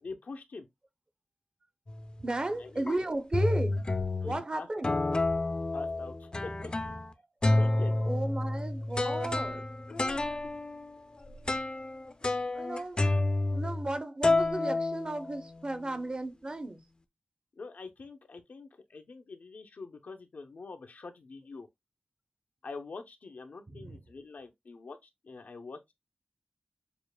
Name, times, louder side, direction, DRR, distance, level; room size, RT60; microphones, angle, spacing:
voice 1, 0.0-0.7 2.6-3.0 4.2-4.9 5.7-6.7 7.5-8.0 9.9-10.5 17.6-21.7 22.6-25.8, left 4 dB, 80° left, 0.7 m, -45 dB
sound 1, 1.9-2.3 2.9-3.0 3.3-4.4 4.8-7.1 7.4-14.0 14.2-15.6, left 2 dB, 35° left, 0.5 m, -30 dB
voice 2, 2.2-3.8 4.2-5.0 7.2-7.3 8.0-9.7 12.5-13.0 13.5-16.8 23.7-24.0, right 2 dB, 35° right, 0.8 m, -34 dB
6.9 x 2.5 x 2.2 m
wide cardioid pair, 90°, 3 cm